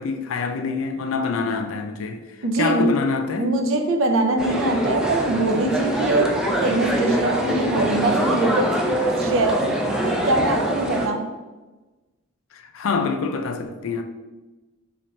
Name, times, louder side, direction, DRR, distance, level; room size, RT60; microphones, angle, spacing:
voice 1, 0.0-2.2 2.6-3.5 12.5-14.0, left 4 dB, 75° left, 0.4 m, -25 dB
voice 2, 2.4-3.0 3.4-8.9 9.2-11.4, right 2 dB, 70° right, 0.5 m, -23 dB
sound 1, 4.4-11.1, right 1 dB, 5° right, 0.3 m, -23 dB
3.2 x 2.4 x 4.0 m
head